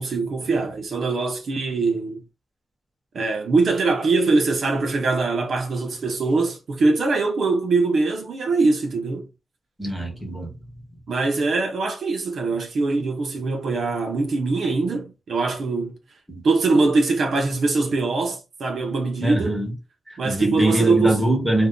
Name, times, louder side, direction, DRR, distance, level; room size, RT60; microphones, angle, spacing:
voice 1, 0.0-2.2 3.1-9.3 11.1-16.0 16.4-19.6 20.2-21.2, right 3 dB, 70° right, 0.6 m, -22 dB
voice 2, 9.8-10.5 16.3-16.4 19.2-19.7 20.1-21.7, right 1 dB, 5° right, 1.1 m, -23 dB
2.6 x 2.2 x 3.5 m
wide cardioid pair, 135°, 0 cm